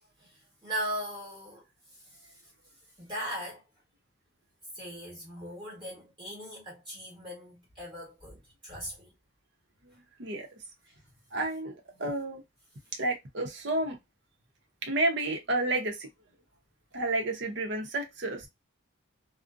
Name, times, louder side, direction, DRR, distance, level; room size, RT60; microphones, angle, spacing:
voice 1, 0.2-2.5 3.0-3.7 4.7-9.1 9.9-10.0 10.9-11.0, right 1 dB, 25° right, 1.1 m, -39 dB
voice 2, 11.3-11.7 12.0-12.4 12.9-14.0 14.8-16.1 16.9-18.5, right 2 dB, 55° right, 0.7 m, -30 dB
2.5 x 2.1 x 2.5 m
head